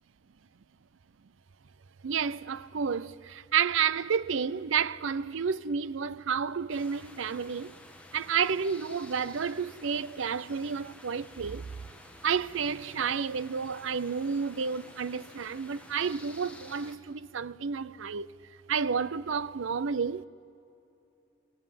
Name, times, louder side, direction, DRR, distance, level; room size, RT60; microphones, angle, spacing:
voice 1, 2.0-7.7 8.1-11.7 12.2-18.3 18.7-20.3, right 6 dB, 70° right, 0.5 m, -30 dB
sound 1, 6.7-16.9, left 1 dB, 5° left, 1.3 m, -51 dB
21.5 x 17.5 x 9.0 m
head